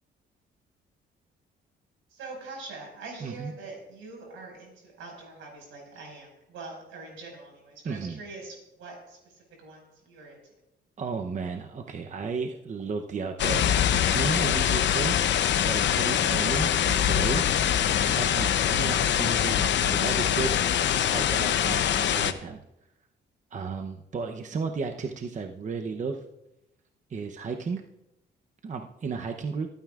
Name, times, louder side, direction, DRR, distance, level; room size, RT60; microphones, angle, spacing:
voice 1, 2.1-9.3 9.6-10.4, right 3 dB, 90° right, 0 dB, 5.6 m, -43 dB
voice 2, 3.2-3.5 7.8-8.2 11.0-15.2 15.6-17.4 18.0-22.6 23.5-26.2 27.1-27.8 28.6-29.7, right 5 dB, 40° right, 4 dB, 0.8 m, -34 dB
sound 1, 13.4-22.3, left 10 dB, 65° left, 0.8 m, -24 dB
24.0 x 9.3 x 2.5 m, 0.89 s
cardioid pair, 90°, 20 cm